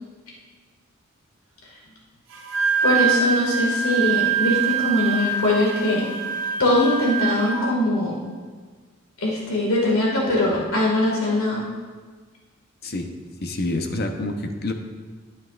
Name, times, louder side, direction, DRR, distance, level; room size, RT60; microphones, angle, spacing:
Wind instrument woodwind instrument, 2.3-7.6, right 6 dB, 70° right, 1.5 m, -24 dB
voice 1, 2.8-6.1 6.6-8.2 9.2-11.7, left 1 dB, 80° left, -4 dB, 2.0 m, -21 dB
voice 2, 12.8-13.1 13.4-14.7, left 2 dB, 50° left, 5 dB, 0.8 m, -27 dB
12.5 x 9.1 x 2.5 m, 1.5 s
head